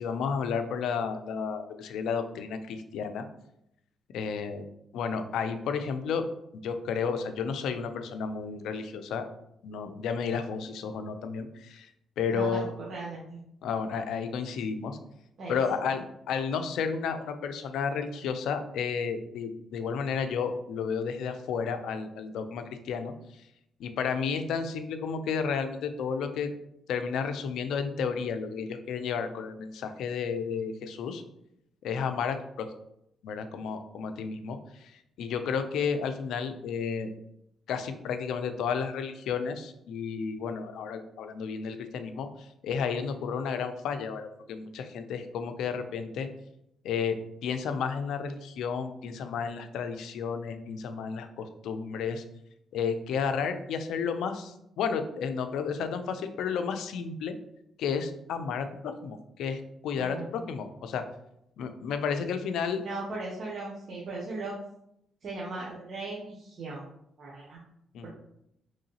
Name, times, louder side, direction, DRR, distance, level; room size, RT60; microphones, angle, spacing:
voice 1, 0.0-3.3 4.1-4.6 4.9-6.2 6.6-9.2 9.6-11.9 12.2-12.7 13.6-15.0 15.5-16.0 16.3-23.1 23.8-26.5 26.9-31.2 31.8-32.7 33.2-34.9 35.2-37.1 37.7-46.3 46.8-52.2 52.7-57.3 57.8-61.0 61.6-62.8 67.9-68.1, left 6 dB, 80° left, 8 dB, 0.4 m, -32 dB
voice 2, 12.3-13.4 15.4-15.6 59.9-60.4 62.8-64.5 65.2-66.8 67.2-67.6 68.0-68.1, right 3 dB, 60° right, -5 dB, 0.8 m, -38 dB
3.7 x 3.2 x 2.8 m, 0.78 s
cardioid pair, 90°, 0 cm